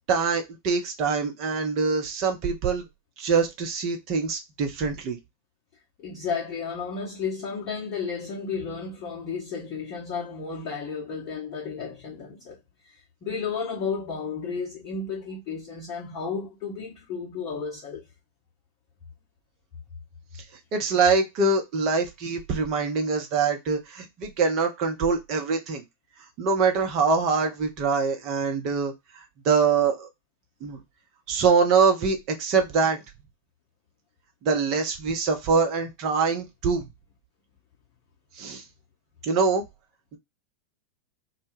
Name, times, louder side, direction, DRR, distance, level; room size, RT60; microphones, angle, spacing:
voice 1, 0.1-2.8 3.2-5.2 20.7-25.8 26.4-28.9 29.4-30.1 30.6-30.8 31.3-33.0 34.4-36.9 38.3-38.6 39.2-39.6, right 5 dB, 40° right, 0.7 m, -24 dB
voice 2, 6.0-12.6 12.8-18.1, left 5 dB, 35° left, 0.7 m, -33 dB
2.1 x 2.1 x 3.1 m
figure-of-eight pair, 90°, 0 cm